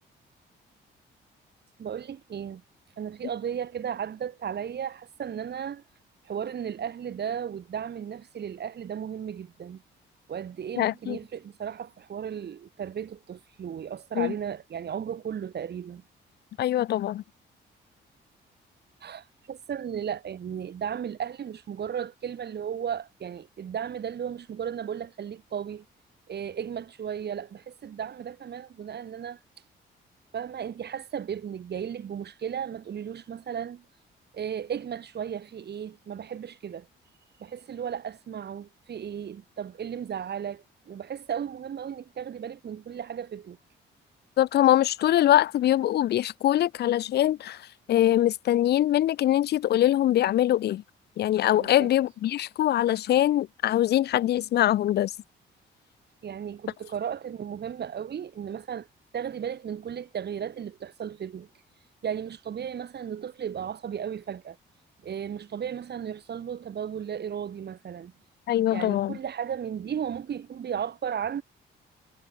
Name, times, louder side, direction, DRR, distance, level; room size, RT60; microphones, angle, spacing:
voice 1, 1.8-2.6 3.0-5.8 6.2-9.8 10.3-16.0 19.0-25.8 26.3-29.4 30.3-33.8 34.3-36.9 37.4-43.6 51.6-51.9 56.2-58.9 59.1-61.5 62.0-64.6 65.0-68.1 68.7-71.4, right 8 dB, 55° right, 7.9 m, -35 dB
voice 2, 10.8-11.2 14.2-14.3 16.6-17.2 44.4-50.8 51.2-55.1 68.5-69.2, left 13 dB, 55° left, 0.4 m, -23 dB
cardioid pair, 90°, 20 cm